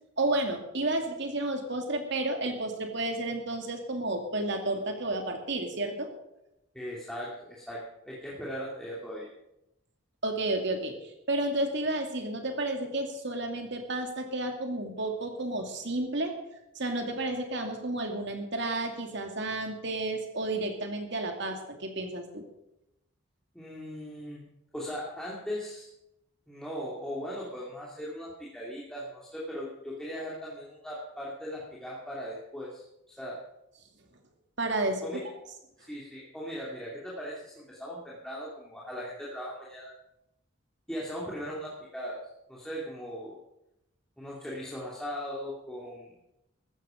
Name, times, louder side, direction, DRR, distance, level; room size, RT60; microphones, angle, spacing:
voice 1, 0.2-6.1 10.2-16.3 16.8-22.5 34.6-35.0, right 2 dB, 60° right, 4 dB, 2.6 m, -31 dB
voice 2, 6.7-7.8 8.0-9.3 23.5-24.5 24.7-25.9 26.5-32.8 33.2-33.4 35.0-35.2 35.8-39.9 40.9-42.2 42.5-43.4 44.2-46.1, equal, 5° left, -6 dB, 2.7 m, -38 dB
14.5 x 13.5 x 5.1 m, 0.86 s
head